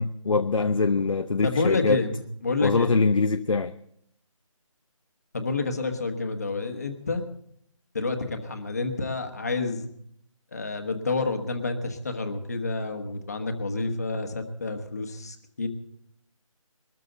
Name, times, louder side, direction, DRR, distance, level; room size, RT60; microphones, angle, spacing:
voice 1, 0.0-2.0 2.6-3.7, left 4 dB, 70° left, 0.8 m, -23 dB
voice 2, 1.4-2.9 5.3-7.2 7.9-9.9 10.5-15.7, left 3 dB, 30° left, 1.4 m, -29 dB
22.0 x 13.5 x 3.9 m
figure-of-eight pair, 175°, 18 cm